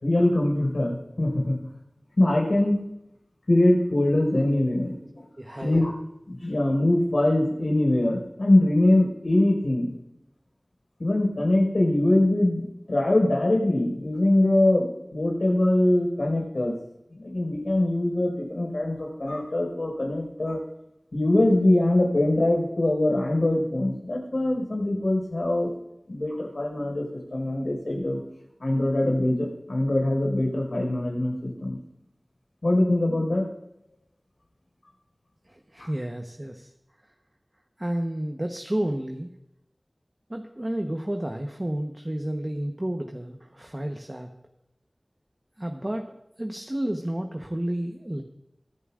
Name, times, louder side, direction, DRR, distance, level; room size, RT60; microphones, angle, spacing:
voice 1, 0.0-1.6 2.2-2.8 3.5-5.2 5.6-5.9 6.3-9.9 11.0-16.7 17.2-20.6 21.1-25.8 26.1-28.2 28.6-31.8 32.6-33.4 35.8-35.9, left 1 dB, 85° left, -1 dB, 5.0 m, -23 dB
voice 2, 5.4-5.9 35.5-36.7 37.8-39.3 40.3-44.3 45.6-48.2, right 1 dB, 30° right, 3 dB, 1.0 m, -31 dB
23.0 x 11.0 x 2.5 m, 0.83 s
wide cardioid pair, 45°, 0 cm